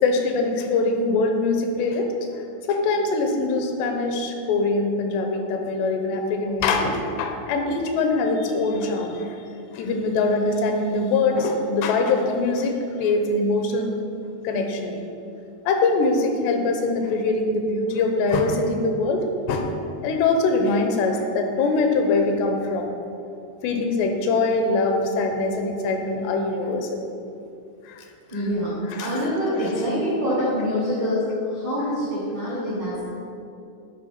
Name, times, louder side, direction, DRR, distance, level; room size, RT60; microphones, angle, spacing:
voice 1, 0.0-2.1 2.7-9.4 9.7-12.7 13.0-13.9 14.4-15.0 15.7-19.2 19.5-19.7 20.0-23.0 23.6-27.0 27.9-28.0 28.9-29.1, left 3 dB, 85° left, 4 dB, 2.7 m, -23 dB
voice 2, 28.3-33.0, equal, 85° right, -8 dB, 1.0 m, -25 dB
9.9 x 3.7 x 5.6 m, 2.7 s
omnidirectional pair, 5.0 m